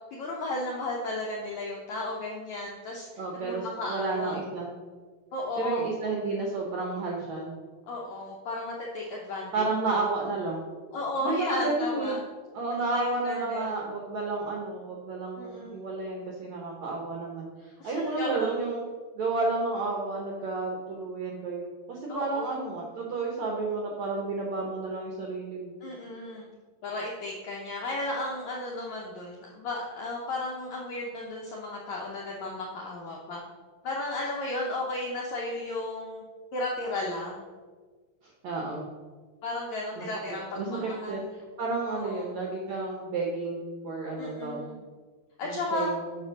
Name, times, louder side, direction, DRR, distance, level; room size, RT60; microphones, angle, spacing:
voice 1, 0.1-3.1 3.3-4.3 5.3-5.9 7.9-9.6 10.0-10.1 10.9-12.2 12.7-13.8 15.4-15.8 17.8-18.6 22.1-22.8 25.8-26.5 26.8-33.4 33.8-36.2 36.5-37.4 39.4-41.3 41.9-42.4 44.2-44.8 45.4-45.9, left 2 dB, 80° left, -3 dB, 1.6 m, -34 dB
voice 2, 3.2-4.7 5.6-7.6 9.5-10.6 11.2-12.2 12.5-18.8 19.1-25.8 38.4-38.8 40.0-40.1 40.5-41.2 41.6-44.7 45.4-46.2, right 3 dB, 75° right, -1 dB, 1.6 m, -31 dB
7.2 x 5.5 x 6.2 m, 1.5 s
omnidirectional pair, 4.6 m